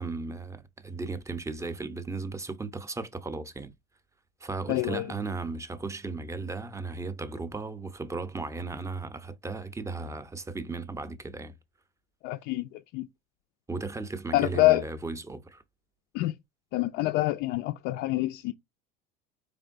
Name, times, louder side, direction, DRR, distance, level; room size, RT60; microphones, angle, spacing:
voice 1, 0.0-3.7 4.4-11.5 13.7-15.6, right 3 dB, 15° right, 0.6 m, -36 dB
voice 2, 4.7-5.1 12.2-13.1 14.3-14.8 16.1-16.3 16.7-18.5, left 18 dB, 55° left, 0.4 m, -26 dB
4.3 x 3.4 x 2.4 m
supercardioid pair, 95°, 21 cm